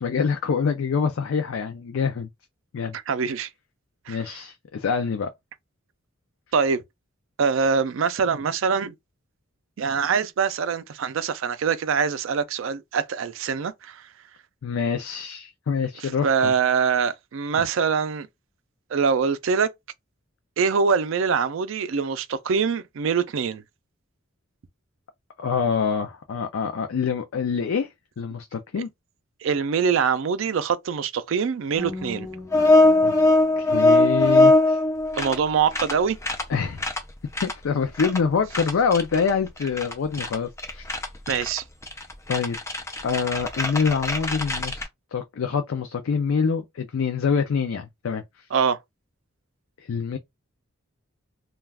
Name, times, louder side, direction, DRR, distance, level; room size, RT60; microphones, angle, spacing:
voice 1, 0.0-2.3 2.7-2.9 4.1-5.3 14.6-16.5 17.5-17.6 25.4-27.9 28.2-28.9 33.0-33.1 33.6-34.8 36.5-36.8 37.4-40.9 42.3-42.6 43.0-44.8 45.1-48.2 49.9-50.2, left 6 dB, 75° left, 0.4 m, -25 dB
voice 2, 2.9-3.5 4.1-4.4 6.5-6.8 7.4-8.9 9.8-14.0 16.0-18.3 18.9-19.7 20.6-23.6 28.8-28.9 29.4-32.3 35.2-36.2 41.3-41.6 48.5-48.8, right 6 dB, 70° right, 0.4 m, -24 dB
sound 1, 31.8-35.4 35.7-35.9 36.2-36.4 36.8-37.0 37.3-37.5 38.0-38.2 38.5-44.8, left 2 dB, 15° left, 0.5 m, -21 dB
2.3 x 2.3 x 3.3 m
head